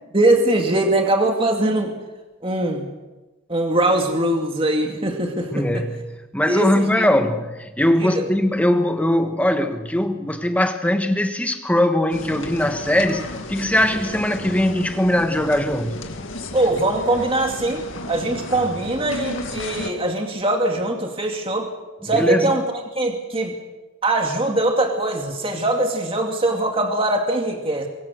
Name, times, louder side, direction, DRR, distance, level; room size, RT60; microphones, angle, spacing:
voice 1, 0.1-1.9 2.4-2.9 3.5-5.8 6.5-7.1 8.0-8.3 16.5-21.7 22.0-22.6 23.0-23.6 24.0-27.9, right 1 dB, 25° right, 2 dB, 2.3 m, -21 dB
voice 2, 5.5-6.0 6.3-16.0 22.0-22.5, left 1 dB, 5° left, 6 dB, 1.5 m, -20 dB
sound 1, 12.1-19.9, left 1 dB, 65° left, 2.4 m, -33 dB
23.5 x 22.5 x 6.5 m, 1.1 s
head